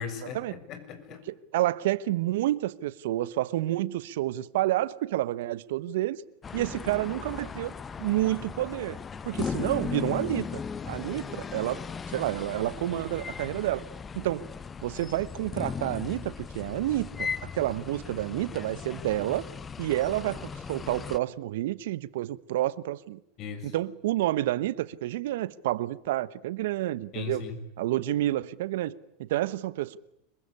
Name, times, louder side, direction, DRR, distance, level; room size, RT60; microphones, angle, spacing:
voice 1, 0.0-1.2 23.4-23.8 27.1-27.6, left 6 dB, 45° left, 6.7 m, -38 dB
voice 2, 1.3-6.2 6.5-9.0 9.2-11.8 12.1-13.8 14.1-14.4 14.8-19.5 19.8-23.2 23.6-27.4 27.8-30.0, right 15 dB, 70° right, 1.0 m, -29 dB
sound 1, 6.4-21.2, left 6 dB, 25° left, 1.2 m, -37 dB
27.0 x 22.5 x 9.9 m
hypercardioid pair, 90°, 0 cm